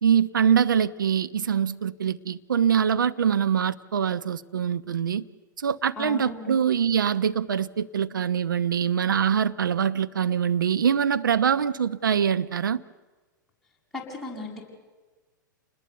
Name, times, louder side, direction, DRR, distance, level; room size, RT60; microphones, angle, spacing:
voice 1, 0.0-5.3 5.6-12.8, right 8 dB, 75° right, 0.9 m, -24 dB
voice 2, 6.0-6.5 13.9-14.6, left 2 dB, ahead, 7.2 m, -36 dB
28.5 x 20.5 x 8.2 m
hypercardioid pair, 105°, 11 cm